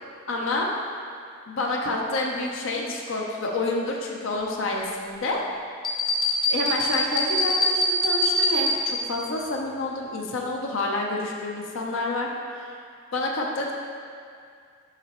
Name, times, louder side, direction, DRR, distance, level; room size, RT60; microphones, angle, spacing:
voice 1, 0.3-0.7 1.5-5.4 6.5-12.7 13.1-13.7, left 2 dB, 70° left, -1 dB, 0.7 m, -28 dB
sound 1, 5.8-9.2, left 1 dB, 25° left, 0.7 m, -24 dB
6.7 x 5.1 x 3.1 m, 2.3 s
head